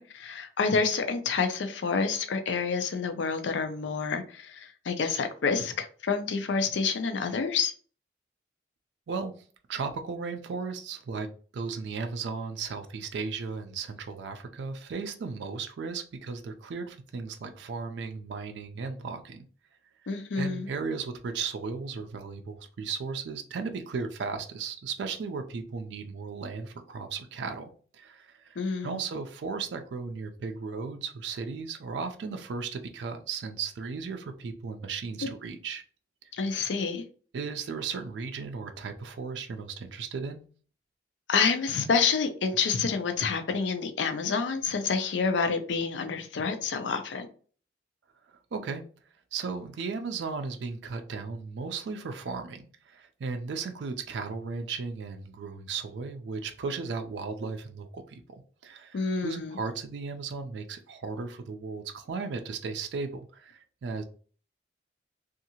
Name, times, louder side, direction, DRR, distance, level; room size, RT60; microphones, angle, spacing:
voice 1, 0.0-7.7 20.1-20.7 28.6-29.0 35.2-35.3 36.3-37.0 41.3-47.3 58.9-59.6, left 5 dB, 85° left, 7 dB, 0.4 m, -28 dB
voice 2, 9.7-11.3 11.5-19.4 20.4-28.6 28.8-35.8 36.2-36.3 37.3-40.4 48.3-48.8 49.3-58.2 58.6-64.0, right 5 dB, 75° right, 6 dB, 0.4 m, -36 dB
2.7 x 2.4 x 2.7 m, 0.42 s
head